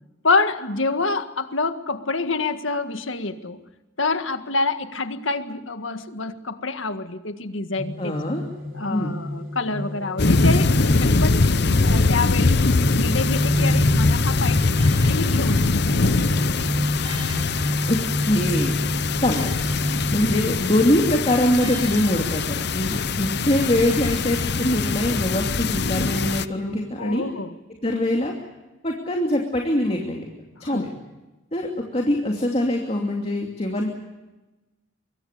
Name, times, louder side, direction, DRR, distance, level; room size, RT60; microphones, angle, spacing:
voice 1, 0.2-3.6 4.0-8.4 8.7-11.4 11.8-12.6 12.9-14.8 15.0-15.7 16.0-16.3 27.0-27.5 30.6-30.9, left 3 dB, 75° left, 9 dB, 1.7 m, -27 dB
sound 1, 7.7-26.9, left 1 dB, 70° right, 5.0 m, -29 dB
voice 2, 8.0-8.4 8.9-9.1 17.9-18.8 19.2-19.6 20.1-27.2 27.8-28.3 28.8-30.3 30.6-30.9 31.5-33.9, left 1 dB, 30° left, 1 dB, 2.7 m, -23 dB
sound 2, 10.2-26.5, left 3 dB, 55° left, 0.8 m, -22 dB
sound 3, 14.5-16.3 17.0-20.8 21.6-25.4 26.2-26.3, right 2 dB, 25° right, 5.6 m, -46 dB
25.5 x 23.0 x 6.8 m, 1.1 s
head